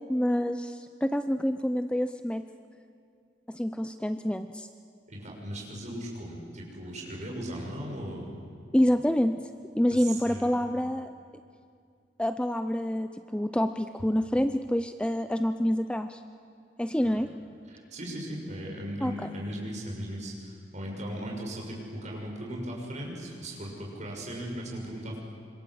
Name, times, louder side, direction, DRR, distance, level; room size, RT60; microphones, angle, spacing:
voice 1, 0.1-2.4 3.5-4.7 8.7-9.4 9.8-11.1 12.2-16.2 16.8-17.3 19.0-19.1, equal, 5° left, 9 dB, 0.5 m, -27 dB
voice 2, 5.1-8.3 9.9-10.6 17.7-25.2, equal, 40° right, -1 dB, 6.4 m, -37 dB
26.5 x 25.5 x 7.8 m, 2.4 s
head